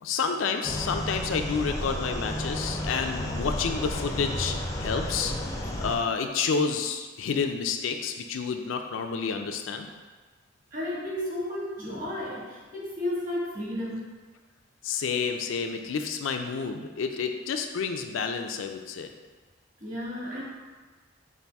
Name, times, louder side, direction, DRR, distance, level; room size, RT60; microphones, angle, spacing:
voice 1, 0.0-5.3 5.8-9.9 14.8-19.1, left 5 dB, 80° left, 5 dB, 0.4 m, -29 dB
sound 1, 0.6-6.0, left 1 dB, 15° left, 0.4 m, -32 dB
voice 2, 10.7-14.1 19.8-20.4, left 1 dB, 40° right, -7 dB, 1.5 m, -33 dB
5.4 x 2.5 x 3.4 m, 1.3 s
head